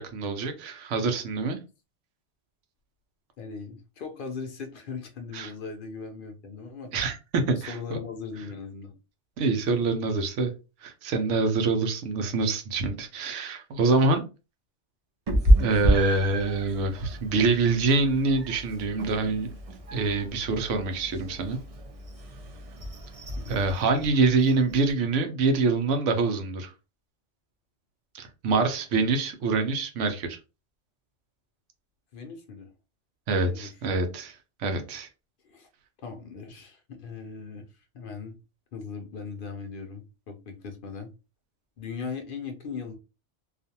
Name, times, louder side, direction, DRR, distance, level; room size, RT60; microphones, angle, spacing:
voice 1, 0.0-1.6 5.3-5.5 6.9-8.0 9.4-10.5 10.8-14.2 15.6-19.5 19.9-21.6 23.5-26.7 28.1-30.4 33.3-35.1, right 3 dB, 90° right, 1.0 m, -25 dB
voice 2, 3.4-6.9 7.6-9.0 23.5-23.6 32.1-32.7 33.5-33.7 35.4-35.7 36.0-38.4 38.7-41.1 41.8-43.0, left 5 dB, 60° left, 0.6 m, -39 dB
Meow, 15.3-24.9, right 1 dB, 45° right, 0.5 m, -29 dB
2.5 x 2.4 x 2.7 m
omnidirectional pair, 1.2 m